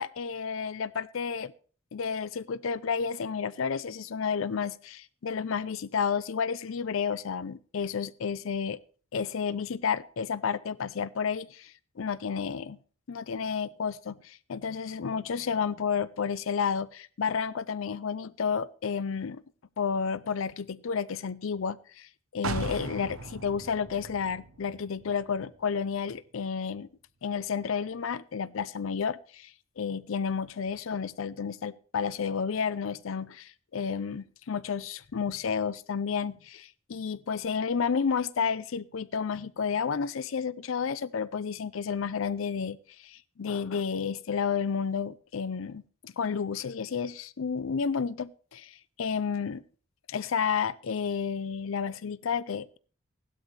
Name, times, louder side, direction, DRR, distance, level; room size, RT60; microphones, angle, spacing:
voice 1, 0.0-1.5 1.9-8.8 9.1-12.8 13.1-19.4 19.8-26.9 27.2-49.6 50.1-52.8, left 6 dB, 70° left, 0.5 m, -31 dB
sound 1, 22.4-26.2 26.5-26.6, right 3 dB, 80° right, 0.8 m, -39 dB
16.0 x 12.0 x 3.3 m
head